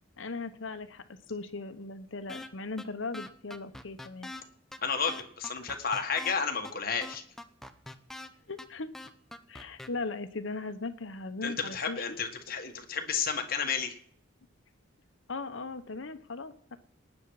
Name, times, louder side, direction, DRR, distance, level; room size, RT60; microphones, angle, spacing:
voice 1, 0.2-4.3 8.5-8.9 9.5-12.2 15.3-16.8, left 3 dB, 70° left, 10 dB, 1.0 m, -38 dB
sound 1, 2.3-2.5 2.8-2.9 3.1-4.4 4.7-4.8 5.1-6.4 6.7-6.8 7.0-8.3 8.6-8.7 8.9-9.9, left 2 dB, ahead, 0.7 m, -43 dB
voice 2, 4.8-7.2 11.4-14.0, left 6 dB, 50° left, 5 dB, 1.7 m, -32 dB
19.0 x 9.7 x 4.8 m, 0.64 s
head